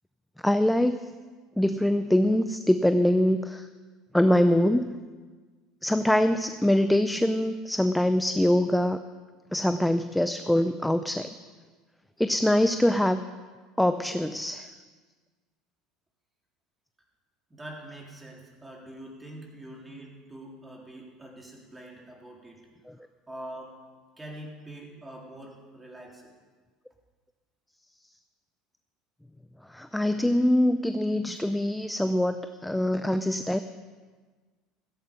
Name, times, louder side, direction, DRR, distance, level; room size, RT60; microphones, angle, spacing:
voice 1, 0.4-1.1 1.6-3.7 4.1-5.0 5.8-9.0 9.5-11.3 12.2-13.2 13.8-14.7 29.7-33.6, left 1 dB, 5° left, 9 dB, 0.5 m, -24 dB
voice 2, 17.5-22.6 22.9-23.8 24.2-26.3, right 1 dB, 10° right, -1 dB, 3.6 m, -44 dB
15.5 x 14.0 x 5.3 m, 1.4 s
supercardioid pair, 130°, 0 cm